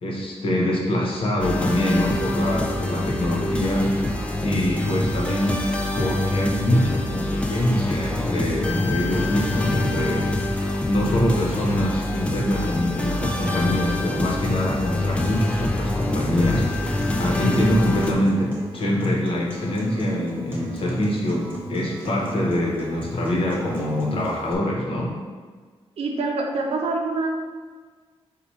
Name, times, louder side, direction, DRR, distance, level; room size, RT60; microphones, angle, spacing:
voice 1, 0.0-3.9 4.4-10.5 10.8-25.1, left 1 dB, 60° left, -3 dB, 1.0 m, -24 dB
sound 1, 1.4-18.1, left 1 dB, 10° left, 0.3 m, -25 dB
Acoustic guitar, 16.5-24.5, right 2 dB, 20° right, 0.8 m, -36 dB
voice 2, 26.0-27.3, right 3 dB, 75° right, 1 dB, 0.6 m, -25 dB
4.1 x 2.4 x 4.7 m, 1.5 s
wide cardioid pair, 160°, 10 cm